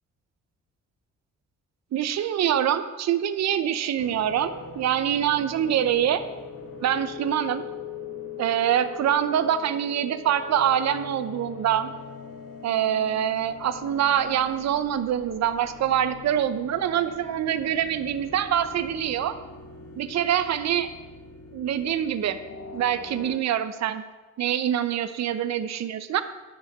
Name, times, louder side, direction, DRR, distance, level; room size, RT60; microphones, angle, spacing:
voice 1, 1.9-6.2 6.8-7.6 8.4-11.9 12.6-19.3 20.0-20.9 21.5-22.4 22.7-24.0 24.4-26.2, right 10 dB, 60° right, 11 dB, 0.8 m, -25 dB
sound 1, 4.0-23.4, left 5 dB, 50° left, 1.4 m, -42 dB
10.5 x 7.0 x 7.2 m, 1.2 s
cardioid pair, 90°, 30 cm